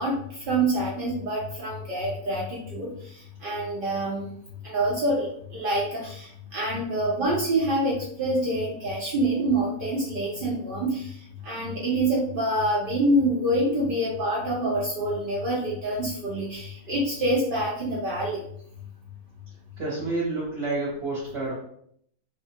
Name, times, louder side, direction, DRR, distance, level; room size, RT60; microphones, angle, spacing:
voice 1, 0.0-4.3 4.6-5.3 5.5-11.2 11.4-18.4, right 1 dB, 80° right, -5 dB, 0.4 m, -26 dB
voice 2, 19.8-21.5, right 2 dB, 50° right, -7 dB, 0.9 m, -29 dB
2.6 x 2.2 x 2.8 m, 0.69 s
omnidirectional pair, 1.6 m